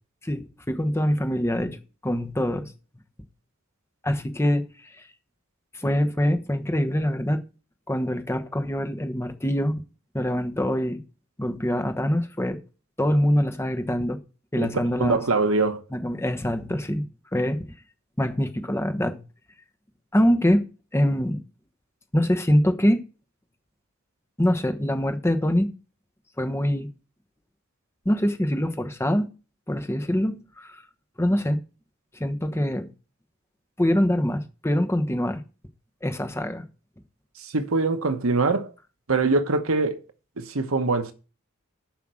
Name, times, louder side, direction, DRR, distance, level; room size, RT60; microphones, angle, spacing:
voice 1, 0.2-2.7 4.0-5.0 5.7-7.4 7.9-9.8 10.1-11.0 11.4-12.6 13.0-14.2 14.5-15.2 15.9-17.7 18.2-19.2 20.1-20.6 20.9-21.4 22.1-23.0 24.4-25.7 26.4-26.9 28.0-29.3 29.7-30.8 31.2-31.6 32.2-32.9 33.8-35.4 36.0-36.7, equal, 10° left, 1.0 m, -24 dB
voice 2, 15.0-15.8 37.4-38.7 39.1-40.0 40.4-41.1, right 3 dB, 70° right, 1.1 m, -23 dB
7.3 x 5.7 x 7.6 m
head